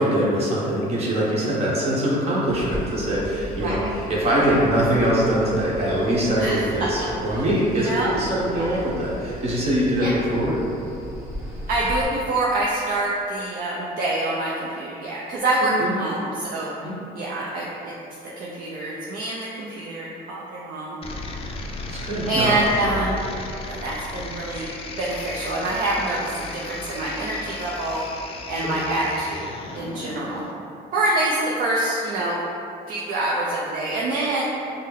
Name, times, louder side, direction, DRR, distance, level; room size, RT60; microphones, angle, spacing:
voice 1, 0.0-10.6 15.6-16.0 16.8-16.9 21.9-22.5 28.5-28.7, right 1 dB, 40° right, -6 dB, 1.2 m, -23 dB
sound 1, 2.5-12.0, equal, 15° right, 1.3 m, -36 dB
voice 2, 3.5-3.9 6.4-7.4 7.8-8.2 8.5-8.8 10.0-10.2 11.7-16.7 17.2-17.9 18.4-21.0 22.3-23.3 23.7-24.7 25.0-28.0 28.5-30.4 30.9-32.4 32.9-34.4, right 2 dB, 55° right, -5 dB, 0.6 m, -26 dB
sound 2, 21.0-30.5, left 3 dB, 35° left, 0.4 m, -35 dB
5.4 x 2.1 x 3.5 m, 2.8 s
cardioid pair, 110°, 17 cm